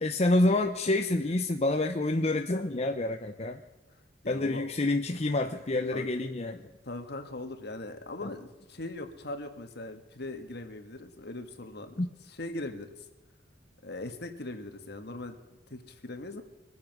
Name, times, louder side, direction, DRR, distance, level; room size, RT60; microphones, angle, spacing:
voice 1, 0.0-3.6 4.3-6.6 8.2-8.3 12.0-12.1, left 2 dB, 35° left, 5 dB, 0.7 m, -27 dB
voice 2, 4.2-4.6 5.9-6.1 6.8-12.9 13.8-15.3 15.7-16.4, left 2 dB, 60° left, 6 dB, 1.6 m, -40 dB
24.5 x 8.4 x 6.0 m, 1.1 s
head